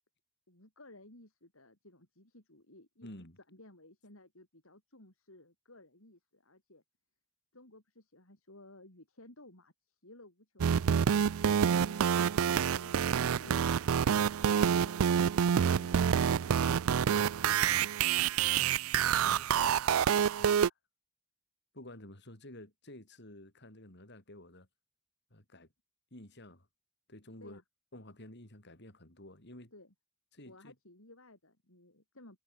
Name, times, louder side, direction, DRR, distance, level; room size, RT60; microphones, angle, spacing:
voice 1, 0.5-3.1 3.5-6.8 7.5-11.6 11.8-12.2 12.4-13.8 14.4-15.1 27.4-27.6 29.7-29.9 30.4-32.4, left 1 dB, 80° left, 7.7 m, -57 dB
voice 2, 3.0-3.4 13.5-13.7 15.8-15.9 19.2-19.5 20.4-20.7 21.7-24.7 25.3-25.7 26.1-26.7 27.1-27.6 27.9-29.7 30.3-30.7, left 1 dB, 55° left, 6.9 m, -51 dB
sound 1, 10.6-20.7, right 8 dB, 85° right, 0.4 m, -27 dB
head